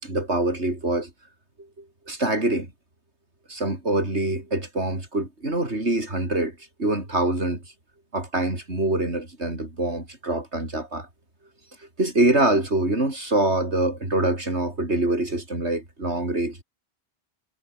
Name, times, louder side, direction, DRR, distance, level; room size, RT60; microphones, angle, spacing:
voice 1, 0.0-1.1 1.8-2.7 3.5-7.6 8.1-11.1 12.0-16.6, right 2 dB, 80° right, 6.1 m, -25 dB
omnidirectional pair, 1.1 m